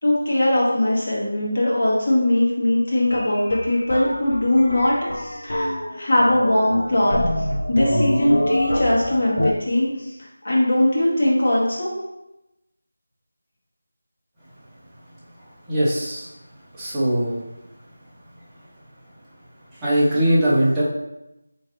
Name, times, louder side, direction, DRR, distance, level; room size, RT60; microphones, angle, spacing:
voice 1, 0.0-10.1 10.4-11.9, left 1 dB, 50° left, -5 dB, 1.5 m, -20 dB
sound 1, 3.1-9.5, left 1 dB, 75° left, 0.6 m, -26 dB
voice 2, 15.4-16.3 16.7-17.4 19.7-20.8, right 1 dB, 10° right, -11 dB, 0.9 m, -21 dB
4.8 x 3.1 x 3.0 m, 0.94 s
figure-of-eight pair, 170°, 0 cm